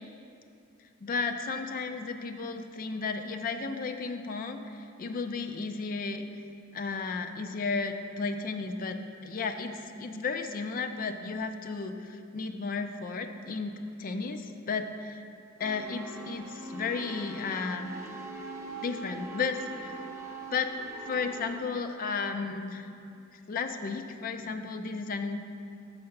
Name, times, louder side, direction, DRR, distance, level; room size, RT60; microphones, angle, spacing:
voice 1, 1.0-6.2 6.7-15.2 15.6-17.9 18.8-19.9 20.5-20.7 21.1-22.9 23.5-25.6, left 4 dB, 40° left, 7 dB, 0.4 m, -34 dB
sound 1, 15.6-21.6, right 2 dB, 15° right, 0.6 m, -42 dB
6.4 x 4.8 x 5.8 m, 2.5 s
head